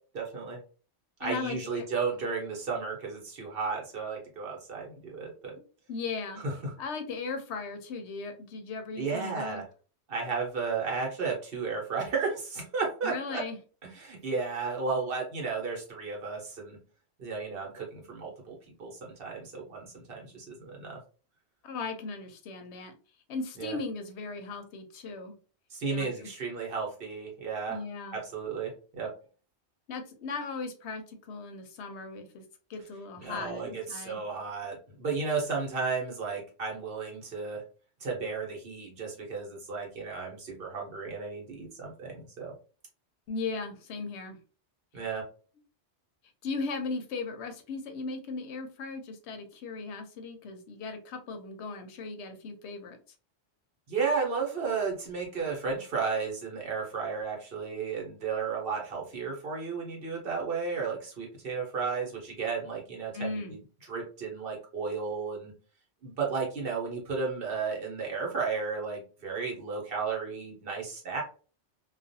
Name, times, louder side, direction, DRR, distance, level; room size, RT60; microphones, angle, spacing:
voice 1, 0.1-0.6 1.2-5.5 6.4-6.5 9.0-9.7 10.1-13.4 13.9-16.8 17.2-21.0 23.6-23.8 25.7-27.8 28.1-29.1 33.2-37.6 38.0-42.5 44.9-45.2 53.9-63.6 63.9-65.5 66.0-71.2, right 5 dB, 55° right, -1 dB, 1.0 m, -33 dB
voice 2, 1.2-1.9 5.9-6.4 6.8-9.6 13.0-13.6 21.6-22.9 23.3-25.3 25.9-26.1 27.7-28.2 29.9-32.4 32.7-34.2 43.3-44.4 46.4-53.0 63.1-63.6, left 4 dB, 75° left, 6 dB, 0.8 m, -37 dB
2.4 x 2.2 x 2.6 m, 0.37 s
omnidirectional pair, 1.2 m